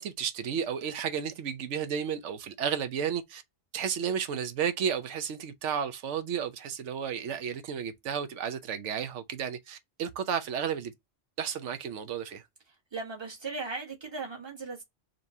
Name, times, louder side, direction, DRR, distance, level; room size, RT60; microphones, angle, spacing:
voice 1, 0.0-3.4 3.7-10.9 11.4-12.4, right 8 dB, 85° right, 1.0 m, -32 dB
voice 2, 12.7-14.8, right 3 dB, 25° right, 1.2 m, -38 dB
5.1 x 3.0 x 2.7 m
omnidirectional pair, 1.2 m